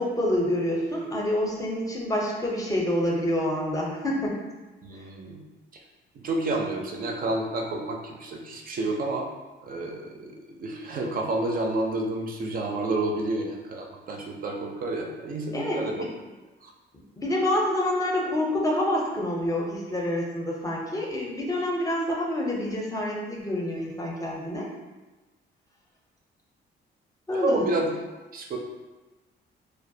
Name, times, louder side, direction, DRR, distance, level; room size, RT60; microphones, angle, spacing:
voice 1, 0.0-4.4 15.5-16.1 17.2-24.7 27.3-27.6, left 1 dB, 15° left, -2 dB, 0.6 m, -27 dB
voice 2, 4.8-5.4 6.2-9.3 9.6-16.1 16.6-16.7 27.3-27.9 28.3-28.6, right 2 dB, 45° right, 1 dB, 0.4 m, -29 dB
2.3 x 2.1 x 2.6 m, 1.2 s
cardioid pair, 90°, 20 cm